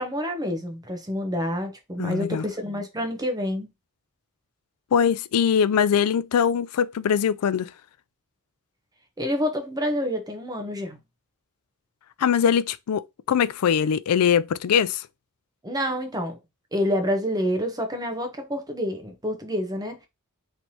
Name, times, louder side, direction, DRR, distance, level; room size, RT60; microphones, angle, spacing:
voice 1, 0.0-3.7 9.2-11.0 15.6-16.4 16.7-20.0, equal, 15° right, 0.9 m, -28 dB
voice 2, 2.0-2.4 4.9-7.7 12.2-15.1, left 7 dB, 85° left, 0.4 m, -22 dB
4.4 x 3.3 x 2.8 m
head